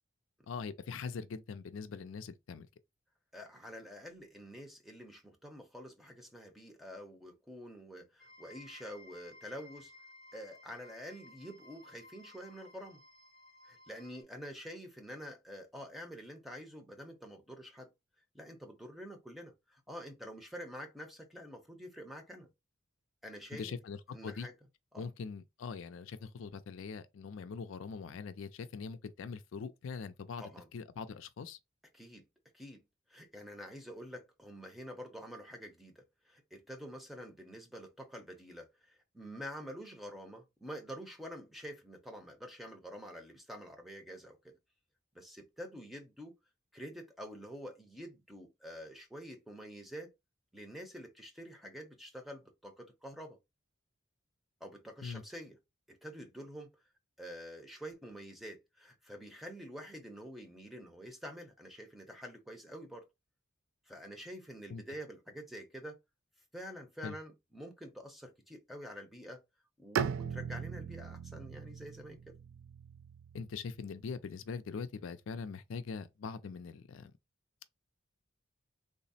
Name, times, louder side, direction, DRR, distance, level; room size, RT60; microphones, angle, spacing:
voice 1, 0.5-2.7 23.5-24.5 25.0-30.4 30.7-31.6 55.0-55.2 64.7-64.8 67.0-67.2 73.3-77.1, left 5 dB, 75° left, 0.4 m, -42 dB
voice 2, 3.3-9.9 10.3-13.0 13.6-17.9 18.3-22.5 23.2-23.7 24.1-24.5 24.9-25.1 30.4-30.7 31.9-32.3 32.5-32.8 33.1-44.6 45.1-46.3 46.7-50.1 50.5-53.4 54.6-55.6 55.9-56.7 57.2-63.1 63.9-66.0 66.5-69.4 69.8-72.4, equal, ahead, 0.7 m, -47 dB
sound 1, 8.2-14.2, left 2 dB, 45° right, 1.2 m, -57 dB
Bowed string instrument, 69.9-73.9, right 7 dB, 75° right, 0.3 m, -39 dB
3.5 x 2.0 x 4.0 m
head